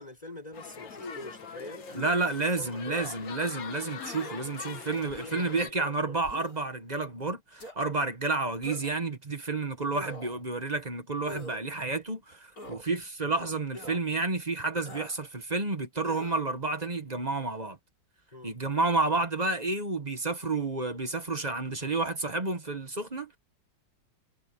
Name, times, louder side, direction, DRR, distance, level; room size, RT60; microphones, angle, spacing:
voice 1, 0.0-2.2 2.6-3.1 4.9-6.2 18.3-18.6, left 1 dB, 20° left, 5.1 m, -45 dB
sound 1, 0.5-5.7, left 7 dB, 75° left, 2.3 m, -43 dB
sound 2, 0.9-1.3 1.9-2.2 2.9-3.2 4.0-4.4 5.1-5.5 6.2-6.6 7.6-7.8 8.6-9.0 9.9-10.4 11.2-11.6 12.6-12.8 13.7-14.0 14.9-15.2 16.0-16.4, left 1 dB, 45° left, 8.1 m, -43 dB
voice 2, 1.9-17.8 18.4-23.4, right 3 dB, 25° right, 1.4 m, -30 dB
omnidirectional pair, 2.1 m